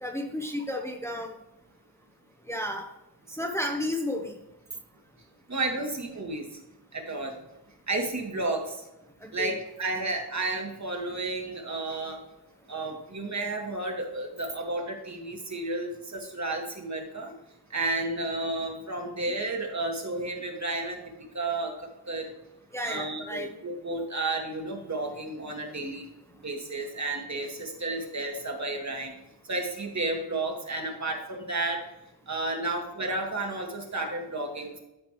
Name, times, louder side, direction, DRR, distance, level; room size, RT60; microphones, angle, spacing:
voice 1, 0.0-1.3 2.5-2.9 3.3-4.3 9.4-9.6 22.7-23.5, left 1 dB, 5° left, 2 dB, 0.9 m, -32 dB
voice 2, 5.5-6.5 6.9-7.3 7.9-8.8 9.3-12.2 12.7-17.3 17.7-21.0 21.3-22.3 22.8-26.1 26.4-29.1 29.5-31.9 32.3-34.8, right 2 dB, 40° right, 2 dB, 1.8 m, -32 dB
13.0 x 5.2 x 3.2 m, 0.92 s
wide cardioid pair, 100°, 40 cm